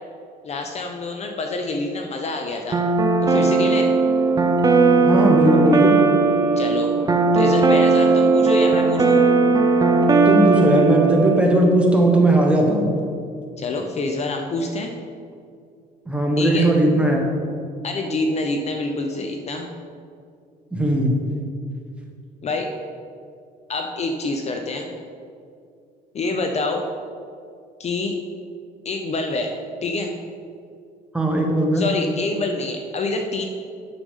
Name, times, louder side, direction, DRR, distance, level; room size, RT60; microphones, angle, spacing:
voice 1, 0.4-2.8 3.2-3.9 6.6-6.9 7.3-9.2 13.6-14.9 16.4-16.7 17.8-19.7 22.4-22.7 23.7-24.9 26.1-26.9 27.8-28.2 28.8-29.5 29.8-30.1 31.7-33.5, left 3 dB, 40° left, 4 dB, 0.7 m, -26 dB
sound 1, 2.7-11.4, right 3 dB, 20° right, 0.7 m, -17 dB
voice 2, 5.0-6.0 10.2-12.9 16.1-17.2 20.7-21.1 31.1-31.8, right 1 dB, 5° right, -1 dB, 1.3 m, -18 dB
8.3 x 6.8 x 3.7 m, 2.3 s
cardioid pair, 110°, 17 cm